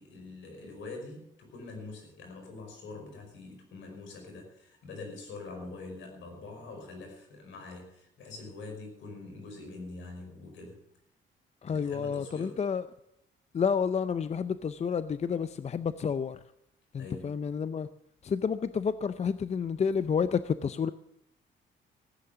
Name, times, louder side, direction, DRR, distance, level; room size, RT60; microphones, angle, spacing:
voice 1, 0.0-10.8 11.7-12.6 17.0-17.3, left 3 dB, 70° left, 3 dB, 5.2 m, -44 dB
voice 2, 11.6-12.8 13.5-16.4 16.9-17.9 18.2-20.9, left 6 dB, 35° left, 14 dB, 0.5 m, -30 dB
15.0 x 9.5 x 6.9 m, 0.78 s
cardioid pair, 90°, 20 cm